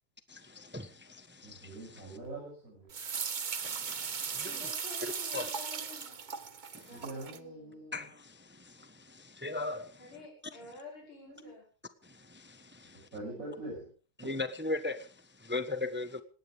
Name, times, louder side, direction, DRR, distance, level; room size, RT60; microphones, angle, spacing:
voice 1, 0.3-1.7 3.6-4.7 5.3-5.5 6.7-6.9 7.9-10.0 12.0-13.1 14.2-16.2, left 2 dB, 10° right, 0.7 m, -39 dB
voice 2, 1.4-2.9 6.9-8.1 11.2-11.5 13.1-13.9 14.2-14.3, right 2 dB, 40° right, 8.4 m, -44 dB
sound 1, 2.9-7.4, right 6 dB, 85° right, 0.4 m, -38 dB
voice 3, 4.4-6.2 6.8-7.8 10.0-11.6, left 2 dB, 80° left, 6.6 m, -50 dB
19.0 x 18.0 x 3.5 m
omnidirectional pair, 2.3 m